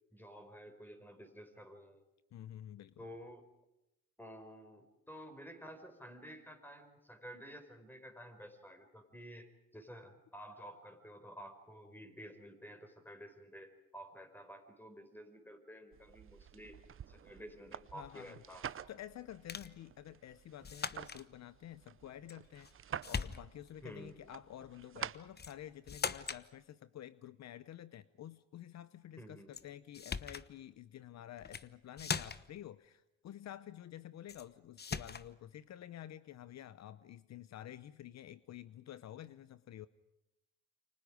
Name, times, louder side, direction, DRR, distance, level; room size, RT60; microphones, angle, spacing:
voice 1, 0.1-2.0 3.0-3.5 4.2-18.7 23.8-24.1 29.2-29.6, equal, 5° left, 7 dB, 4.9 m, -52 dB
voice 2, 2.3-3.0 17.9-18.4 18.7-22.7 23.1-39.9, left 11 dB, 60° left, 15 dB, 0.8 m, -50 dB
sound 1, 15.9-25.9, right 8 dB, 45° right, 0.8 m, -49 dB
sound 2, 19.5-19.8 20.6-21.2 22.3-22.7 23.0-23.7 25.4-25.6 25.9-26.5 29.5-29.6 29.9-30.5 31.4-31.7 32.0-32.6 34.3-34.5 34.8-35.3, left 6 dB, 35° left, 1.1 m, -40 dB
29.0 x 25.0 x 5.1 m, 0.89 s
cardioid pair, 90°, 30 cm